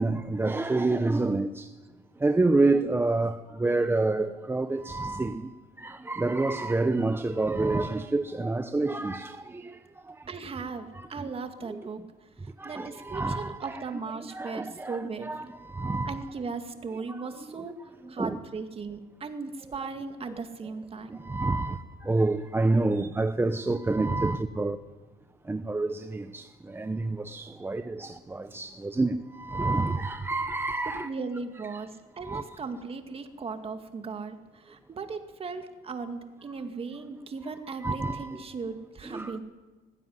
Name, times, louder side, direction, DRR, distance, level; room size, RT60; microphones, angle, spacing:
voice 1, 0.0-1.7 2.2-5.4 5.8-9.6 10.9-11.3 11.7-11.8 12.6-13.8 14.3-16.2 18.2-18.4 19.8-19.9 21.2-24.8 25.5-31.1 31.7-31.8 32.2-32.4 37.8-38.4 39.0-39.4, right 2 dB, 15° right, 0.8 m, -28 dB
voice 2, 10.3-12.0 12.6-15.3 16.1-17.8 18.1-21.2 30.9-39.4, right 4 dB, 35° right, 2.2 m, -37 dB
19.5 x 15.5 x 9.6 m
cardioid pair, 110°, 17 cm